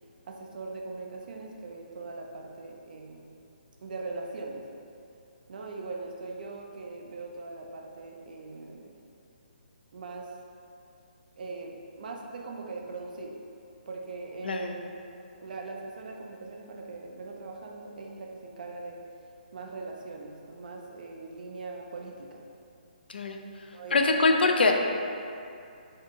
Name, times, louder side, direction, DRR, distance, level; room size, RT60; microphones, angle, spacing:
voice 1, 0.3-3.4 3.8-4.7 5.5-9.1 9.9-10.4 11.4-13.5 13.9-15.0 15.4-19.0 19.5-22.4 23.7-24.4, right 3 dB, 60° right, 1 dB, 0.4 m, -40 dB
voice 2, 23.9-24.7, left 3 dB, 75° left, 3 dB, 0.3 m, -23 dB
2.6 x 2.5 x 3.6 m, 2.6 s
hypercardioid pair, 155°, 5 cm